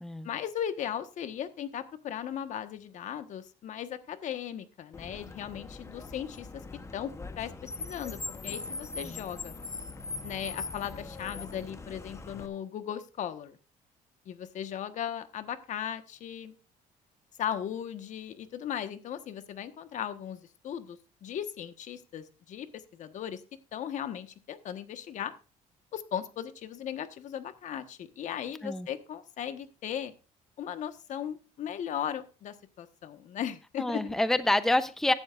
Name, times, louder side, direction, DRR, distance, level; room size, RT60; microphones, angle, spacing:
voice 1, 0.2-6.6 6.9-7.5 7.8-8.2 8.4-9.5 10.2-13.6 14.2-16.5 17.4-23.4 23.7-25.3 25.9-30.1 30.6-34.1, left 9 dB, 60° left, 10 dB, 1.3 m, -37 dB
Car, 4.9-12.5, left 3 dB, 20° left, 1.0 m, -41 dB
voice 2, 33.8-35.1, left 1 dB, 5° left, 12 dB, 0.7 m, -27 dB
16.0 x 11.5 x 2.5 m, 0.32 s
cardioid pair, 130°, 14 cm